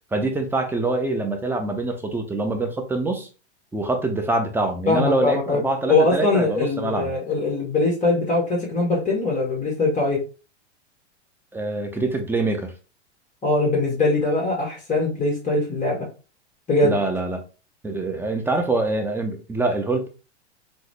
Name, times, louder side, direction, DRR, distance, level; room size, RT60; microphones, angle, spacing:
voice 1, 0.1-3.3 3.7-7.1 11.5-12.7 16.8-17.4 17.8-20.1, right 2 dB, 5° right, 5 dB, 0.6 m, -24 dB
voice 2, 4.9-5.6 5.9-10.2 13.4-16.0 16.7-17.0, left 2 dB, 20° left, -3 dB, 1.2 m, -21 dB
3.8 x 2.1 x 3.1 m, 0.33 s
hypercardioid pair, 110°, 36 cm